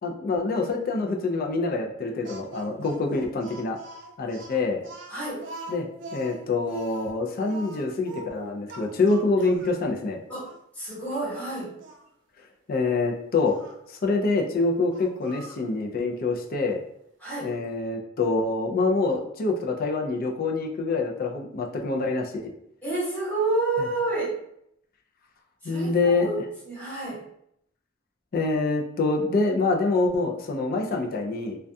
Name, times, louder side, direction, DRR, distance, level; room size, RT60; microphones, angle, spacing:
voice 1, 0.0-3.8 4.2-4.8 5.7-5.9 6.1-10.2 12.7-13.6 13.9-16.8 17.4-22.5 25.6-26.4 28.3-31.6, left 3 dB, 50° left, 2 dB, 0.4 m, -26 dB
Speech, 2.2-9.8 10.4-10.6 11.1-12.0 13.4-13.8 14.9-15.7, right 2 dB, 65° right, 0.4 m, -42 dB
voice 2, 5.1-5.4 10.3-10.5 10.7-11.7 17.2-17.5 22.8-24.3 25.6-25.9 26.2-26.4 26.6-27.2, right 2 dB, 5° left, -10 dB, 0.9 m, -29 dB
2.3 x 2.2 x 2.6 m, 0.74 s
head